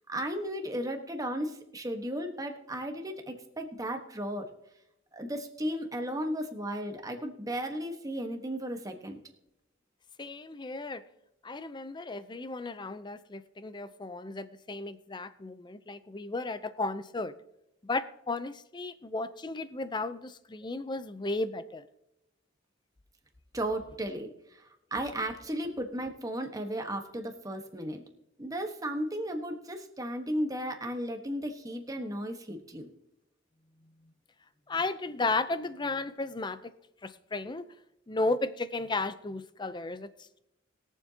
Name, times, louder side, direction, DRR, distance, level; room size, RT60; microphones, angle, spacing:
voice 1, 0.1-4.5 5.1-9.2 23.5-24.3 24.9-28.0 28.4-32.9, equal, 20° right, 4 dB, 1.2 m, -35 dB
voice 2, 10.2-11.0 11.4-17.3 17.8-21.9 34.7-36.7 37.0-37.7 38.1-40.1, left 3 dB, 25° left, 13 dB, 0.5 m, -34 dB
21.5 x 7.3 x 2.8 m, 0.84 s
head